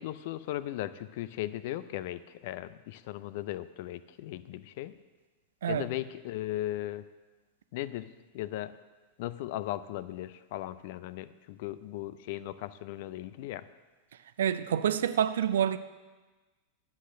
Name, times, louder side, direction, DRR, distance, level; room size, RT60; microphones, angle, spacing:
voice 1, 0.0-4.9 5.7-7.1 7.7-8.7 9.2-13.6, left 14 dB, 50° left, 0.5 m, -37 dB
voice 2, 14.4-15.8, right 9 dB, 60° right, 0.5 m, -27 dB
11.5 x 8.1 x 6.3 m
figure-of-eight pair, 90°, 0 cm